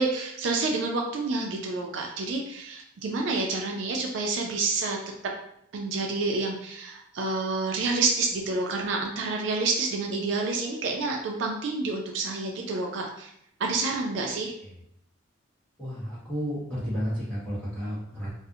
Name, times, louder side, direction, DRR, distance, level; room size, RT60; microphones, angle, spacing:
voice 1, 0.0-5.0 5.7-13.3 13.6-14.5, right 3 dB, 60° right, 1 dB, 0.3 m, -28 dB
voice 2, 15.8-18.3, equal, 5° left, -10 dB, 0.9 m, -32 dB
2.4 x 2.0 x 2.7 m, 0.73 s
head